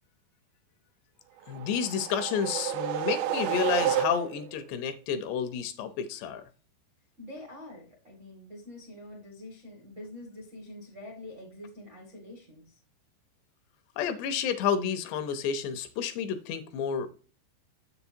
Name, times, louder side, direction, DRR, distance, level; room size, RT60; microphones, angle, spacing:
voice 1, 1.5-6.4 14.0-17.1, left 7 dB, 80° left, 2.7 m, -30 dB
sound 1, 1.5-4.6, right 11 dB, 85° right, 2.8 m, -30 dB
voice 2, 7.2-12.6, left 1 dB, 60° right, 0.7 m, -45 dB
7.4 x 7.0 x 2.7 m
omnidirectional pair, 5.1 m